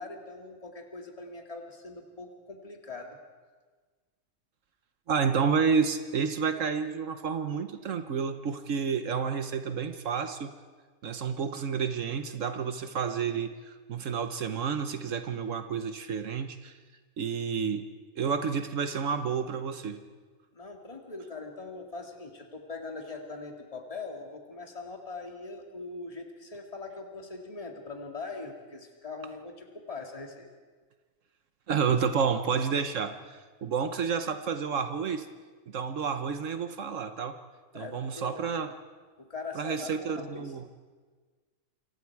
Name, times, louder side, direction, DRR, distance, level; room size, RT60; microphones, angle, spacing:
voice 1, 0.0-3.2 20.5-30.5 37.7-38.4 39.2-40.5, left 3 dB, 25° left, 2 dB, 2.3 m, -41 dB
voice 2, 5.1-10.5 11.0-13.5 13.9-16.7 17.2-17.8 18.2-20.0 31.7-33.1 33.6-35.3 35.7-37.4 37.7-38.7 39.5-40.7, right 6 dB, 75° right, 9 dB, 1.3 m, -30 dB
28.5 x 25.5 x 4.7 m, 1.4 s
omnidirectional pair, 1.4 m